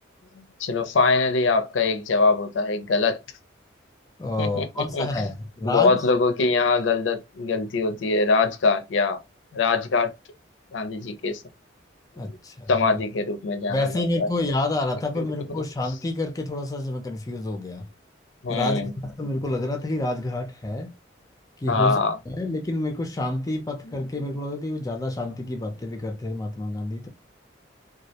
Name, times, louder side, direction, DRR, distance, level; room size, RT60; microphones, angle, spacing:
voice 1, 0.3-3.2 4.4-5.3 5.6-9.2 9.5-10.1 10.7-11.4 12.7-14.3 15.2-15.3 18.4-18.9 21.7-22.2, left 4 dB, 75° left, 0.5 m, -23 dB
voice 2, 4.2-6.0 12.2-13.0 13.7-17.9 18.5-20.9 21.6-22.0 22.3-27.1, left 2 dB, 20° left, 0.4 m, -28 dB
2.2 x 2.1 x 2.7 m
head